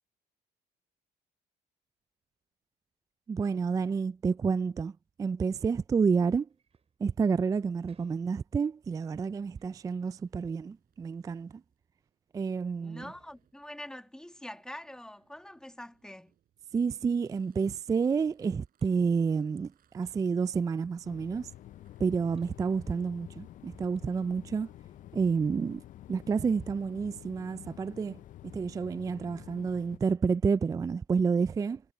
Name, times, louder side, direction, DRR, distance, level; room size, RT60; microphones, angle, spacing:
voice 1, 3.3-6.5 7.0-11.6 12.3-13.1 16.7-21.5 22.0-24.7 25.1-25.8 26.1-31.8, right 5 dB, 20° right, 0.3 m, -29 dB
Door, 6.5-7.0 7.9-8.8 9.5-10.1 10.9-11.0 11.7-11.8 13.0-14.1 14.5-15.5 15.8-16.7 18.0-18.1 18.8-20.7 21.4-21.5 22.3-23.4 23.7-23.8 23.9-24.2, right 6 dB, 35° right, 7.0 m, -69 dB
sound 1, 9.5-23.1, right 11 dB, 60° right, 5.4 m, -74 dB
voice 2, 12.8-16.3, left 1 dB, 5° left, 1.6 m, -45 dB
sound 2, 21.0-30.0, left 13 dB, 50° left, 0.4 m, -49 dB
cardioid pair, 110°, 17 cm